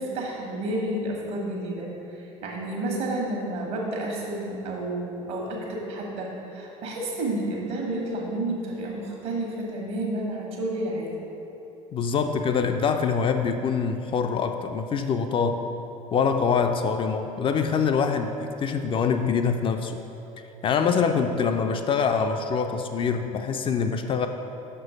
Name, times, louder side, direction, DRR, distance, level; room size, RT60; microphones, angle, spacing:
voice 1, 0.0-11.1, right 1 dB, 60° right, -1 dB, 1.4 m, -30 dB
voice 2, 11.9-15.6 16.1-20.0 20.6-24.3, left 6 dB, 30° left, 6 dB, 0.3 m, -24 dB
6.2 x 4.4 x 5.0 m, 3.0 s
figure-of-eight pair, 60°, 18 cm